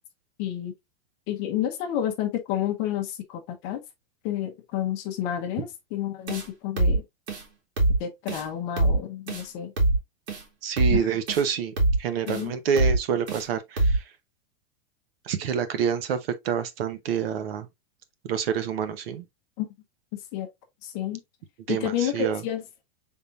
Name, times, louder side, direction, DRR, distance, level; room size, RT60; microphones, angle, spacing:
voice 1, 0.4-0.7 1.3-3.8 4.2-7.0 8.0-9.7 10.9-11.1 12.3-12.5 19.6-19.7 20.3-20.5 20.8-21.2 21.7-22.6, left 11 dB, 25° left, 0.7 m, -30 dB
sound 1, 6.3-6.5 6.8-7.0 7.3-7.4 7.8-8.0 8.3-8.4 8.8-9.0 9.3-9.4 9.8-10.0 10.3-10.4 10.8-11.0 11.3-11.4 11.8-12.0 12.3-12.4 12.8-13.0 13.3-13.4 13.8-14.0, right 2 dB, 85° right, 2.2 m, -23 dB
voice 2, 10.6-14.0 15.2-17.7 18.2-19.2 21.7-22.4, right 7 dB, 60° right, 0.9 m, -27 dB
5.7 x 3.6 x 2.5 m
supercardioid pair, 175°, 33 cm